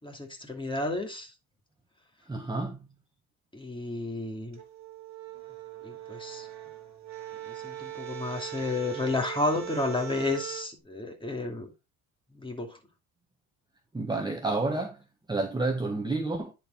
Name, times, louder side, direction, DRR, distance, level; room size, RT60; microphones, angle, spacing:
voice 1, 0.0-1.3 3.5-4.6 5.8-6.5 7.5-11.7 12.3-12.8, left 2 dB, 10° left, 2.5 m, -32 dB
voice 2, 2.3-2.9 13.9-15.0 15.3-16.5, right 2 dB, 10° right, 1.2 m, -30 dB
sound 1, 4.5-10.7, right 12 dB, 35° right, 2.0 m, -40 dB
10.0 x 4.7 x 3.6 m
supercardioid pair, 85°, 44 cm